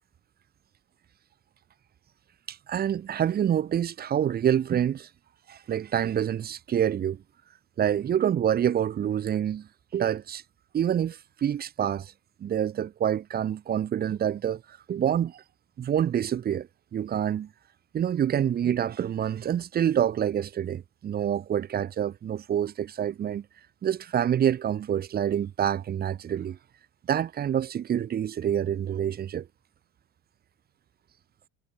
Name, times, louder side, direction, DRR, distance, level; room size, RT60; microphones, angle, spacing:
voice 1, 2.5-5.1 5.5-7.2 7.8-10.4 10.7-12.1 12.4-15.4 15.8-17.5 17.9-23.4 23.8-26.6 27.1-29.5, right 9 dB, 25° right, 4.3 m, -27 dB
cardioid pair, 175°, 35 cm